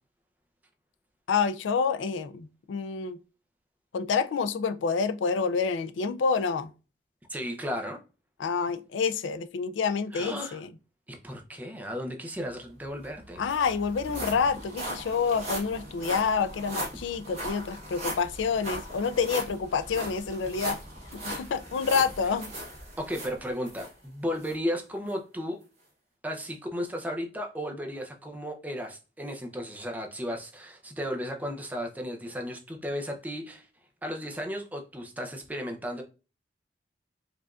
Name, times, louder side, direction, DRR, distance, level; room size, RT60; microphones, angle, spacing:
voice 1, 1.3-3.2 3.9-6.7 8.4-10.7 13.4-20.8 21.2-22.5, left 5 dB, 90° left, 0.4 m, -28 dB
voice 2, 7.3-8.0 10.1-10.6 11.1-13.4 23.0-25.6 26.2-33.7 34.0-36.0, equal, 10° right, 0.5 m, -34 dB
sound 1, 12.7-12.8 13.0-23.9 24.4-24.5 25.1-25.2, equal, 35° right, 1.6 m, -38 dB
4.8 x 2.5 x 2.3 m
head